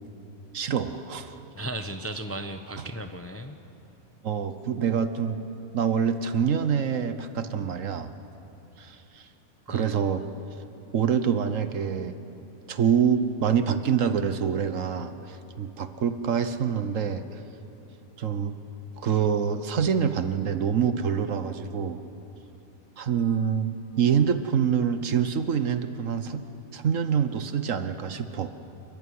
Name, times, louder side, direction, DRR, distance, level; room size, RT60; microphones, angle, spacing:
voice 1, 0.5-1.4 2.8-2.9 4.2-5.4 5.7-8.1 8.8-9.3 9.7-10.2 10.9-12.2 12.7-17.2 18.2-18.6 19.0-22.0 23.0-26.4 26.7-28.5, right 7 dB, 60° right, 10 dB, 1.3 m, -26 dB
voice 2, 1.5-3.6 9.7-10.0, right 1 dB, 10° left, 7 dB, 0.7 m, -36 dB
29.0 x 14.5 x 9.6 m, 2.9 s
omnidirectional pair, 1.5 m